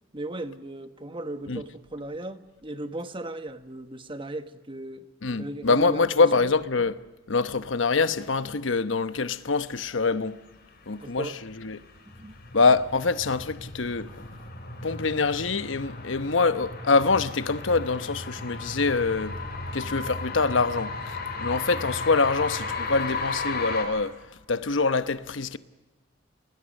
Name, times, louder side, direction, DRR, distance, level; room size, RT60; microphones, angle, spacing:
voice 1, 0.1-5.1 5.4-6.5 11.0-11.4 12.0-12.3, right 1 dB, 25° right, 1.3 m, -37 dB
voice 2, 5.2-7.0 7.3-10.3 10.9-11.8 12.5-14.1 14.8-19.3 19.7-24.1 24.5-25.6, left 4 dB, 75° left, 1.0 m, -25 dB
sound 1, 11.0-23.8, left 3 dB, 55° left, 5.8 m, -35 dB
29.5 x 20.0 x 6.5 m
head